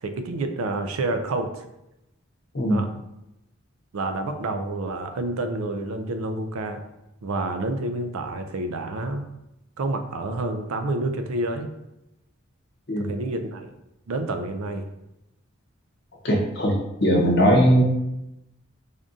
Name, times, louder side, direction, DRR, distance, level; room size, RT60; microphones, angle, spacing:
voice 1, 0.0-1.6 2.7-2.9 3.9-6.8 7.2-9.3 9.8-11.7 13.0-13.7 14.1-14.9, right 2 dB, 85° right, 7 dB, 0.4 m, -28 dB
voice 2, 16.2-16.7 17.0-17.8, equal, 50° left, 0 dB, 0.8 m, -19 dB
3.6 x 2.6 x 3.7 m, 0.89 s
head